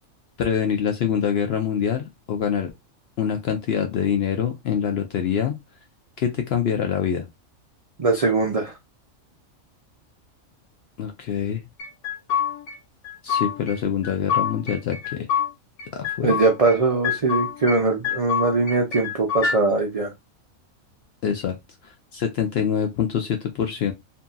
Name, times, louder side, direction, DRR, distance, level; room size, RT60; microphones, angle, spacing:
voice 1, 0.4-2.7 3.2-5.5 6.2-7.3 11.0-11.6 13.2-15.3 15.9-16.4 21.2-21.6 21.8-23.9, left 8 dB, 65° left, 0.6 m, -25 dB
voice 2, 8.0-8.7 16.2-20.1, right 3 dB, 60° right, 0.3 m, -21 dB
sound 1, 11.8-12.8 13.0-13.8 14.0-15.5 15.8-16.8 17.0-17.8 18.0-19.6, left 7 dB, 85° left, 1.2 m, -26 dB
2.8 x 2.6 x 2.2 m
omnidirectional pair, 1.4 m